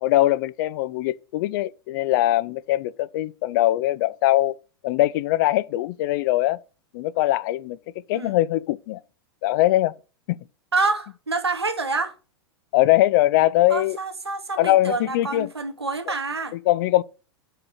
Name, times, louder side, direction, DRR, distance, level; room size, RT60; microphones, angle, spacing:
voice 1, 0.0-4.5 4.8-6.6 6.9-7.8 8.1-9.0 9.4-9.9 10.3-10.4 12.7-14.0 14.6-15.5 16.7-17.0, left 16 dB, 50° left, 0.5 m, -21 dB
voice 2, 10.7-12.1 13.7-16.6, right 3 dB, 85° right, 1.1 m, -27 dB
6.0 x 4.9 x 6.4 m
figure-of-eight pair, 95°, 13 cm